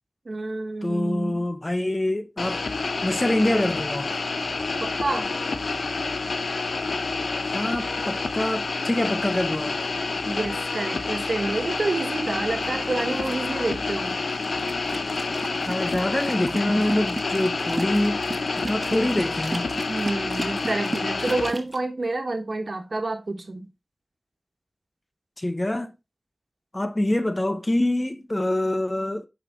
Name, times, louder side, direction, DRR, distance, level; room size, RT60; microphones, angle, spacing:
voice 1, 0.2-1.4 4.8-5.3 10.2-14.2 19.9-23.7, right 2 dB, 60° right, 1.4 m, -28 dB
voice 2, 0.8-2.6 3.0-4.2 7.4-9.8 15.7-18.2 18.6-19.7 25.4-25.9 26.7-29.3, left 1 dB, 25° left, 0.8 m, -25 dB
sound 1, 2.4-21.5, left 3 dB, 90° left, 0.7 m, -28 dB
sound 2, 12.3-21.8, right 2 dB, 35° right, 1.1 m, -37 dB
8.2 x 5.1 x 3.7 m
wide cardioid pair, 70°, 0 cm